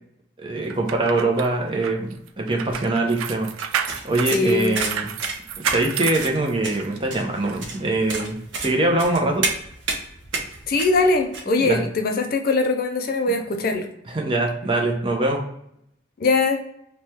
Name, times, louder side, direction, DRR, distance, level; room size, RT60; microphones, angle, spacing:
voice 1, 0.4-3.5 3.8-5.1 5.7-9.5 11.6-11.8 14.1-15.4, right 2 dB, 25° right, 1 dB, 0.6 m, -23 dB
sound 1, 0.7-7.0 7.4-7.6, right 8 dB, 85° right, 0.3 m, -30 dB
sound 2, 3.6-11.4, right 3 dB, 60° right, 0.8 m, -30 dB
voice 2, 4.3-4.8 10.7-13.9 16.2-16.6, left 3 dB, 45° left, 4 dB, 0.4 m, -21 dB
3.1 x 2.2 x 4.2 m, 0.74 s
head